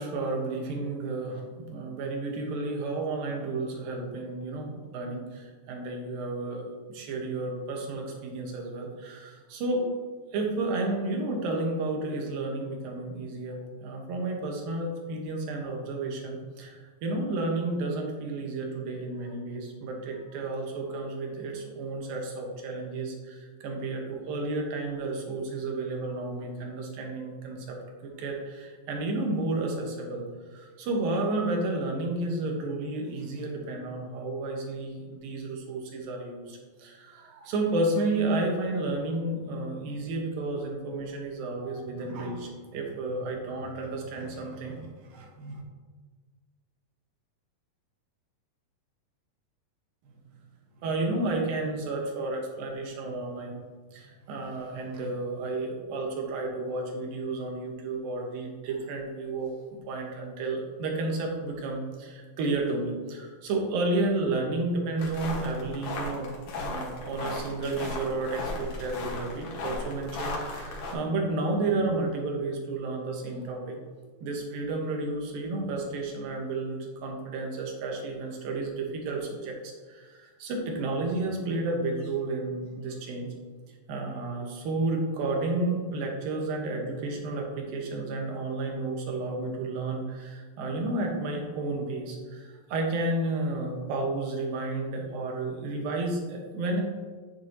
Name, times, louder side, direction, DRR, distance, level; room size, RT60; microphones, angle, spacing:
voice 1, 0.0-6.6 6.9-9.9 10.3-16.8 17.0-27.8 28.2-30.2 30.5-45.6 50.8-53.6 53.9-59.5 59.9-66.3 66.6-73.8 74.2-83.3 83.9-96.8, right 2 dB, 80° right, 1 dB, 3.0 m, -32 dB
sound 1, 65.0-70.9, left 2 dB, 70° left, 2.9 m, -36 dB
9.2 x 8.4 x 2.9 m, 1.5 s
omnidirectional pair, 4.0 m